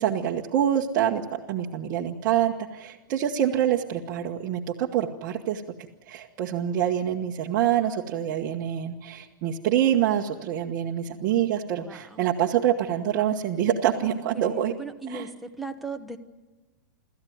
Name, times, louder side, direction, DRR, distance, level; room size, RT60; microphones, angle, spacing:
voice 1, 0.0-5.6 6.1-14.7 15.1-15.3, right 10 dB, 35° right, 1.2 m, -26 dB
voice 2, 11.8-12.3 14.0-15.3 15.6-16.2, right 3 dB, ahead, 1.0 m, -38 dB
26.0 x 14.0 x 9.4 m
hypercardioid pair, 155°, 10 cm